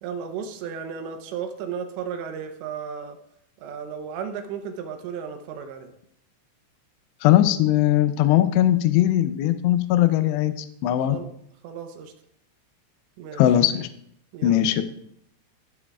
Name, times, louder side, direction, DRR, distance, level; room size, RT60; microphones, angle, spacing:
voice 1, 0.0-3.2 3.6-5.9 11.1-11.3 11.6-12.1 13.2-13.4 14.3-14.7, right 7 dB, 80° right, 6 dB, 2.9 m, -34 dB
voice 2, 7.2-11.2 13.4-13.9 14.4-14.8, left 13 dB, 85° left, 10 dB, 2.4 m, -20 dB
15.0 x 7.6 x 2.4 m, 0.72 s
omnidirectional pair, 5.6 m